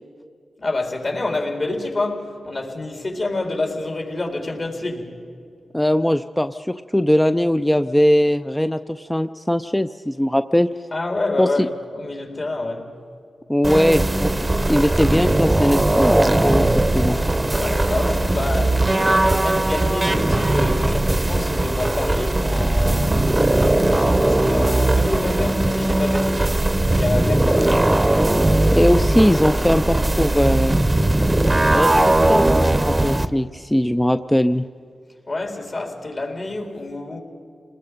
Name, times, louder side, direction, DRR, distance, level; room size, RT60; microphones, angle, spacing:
voice 1, 0.6-5.2 10.9-12.9 17.6-23.3 23.9-27.8 35.3-37.2, left 2 dB, 50° left, 3.9 m, -27 dB
voice 2, 5.7-10.7 11.4-11.7 13.5-17.2 28.7-30.8 31.7-34.7, equal, 10° left, 0.5 m, -20 dB
sound 1, 13.6-33.3, right 1 dB, 20° right, 0.8 m, -19 dB
28.5 x 20.0 x 5.3 m
cardioid pair, 75°, 0 cm